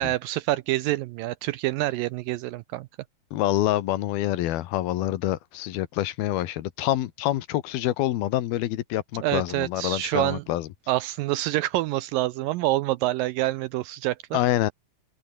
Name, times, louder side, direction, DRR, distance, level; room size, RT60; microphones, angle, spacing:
voice 1, 0.0-2.9 9.2-10.4 10.9-14.4, right 17 dB, 80° right, 2.1 m, -27 dB
voice 2, 3.3-10.7 14.3-14.7, left 14 dB, 80° left, 3.1 m, -26 dB
omnidirectional pair, 4.4 m